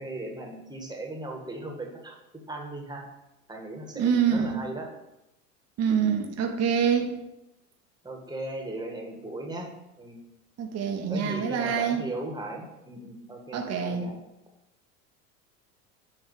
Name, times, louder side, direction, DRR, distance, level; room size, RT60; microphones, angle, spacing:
voice 1, 0.0-2.2 2.5-3.1 3.5-4.9 8.0-9.7 10.0-10.2 11.1-14.2, right 2 dB, 10° right, 0 dB, 1.8 m, -37 dB
voice 2, 3.9-4.7 5.8-7.2 10.6-12.0 13.5-14.1, right 7 dB, 35° right, 3 dB, 1.3 m, -26 dB
8.3 x 3.3 x 6.4 m, 0.91 s
hypercardioid pair, 80°, 42 cm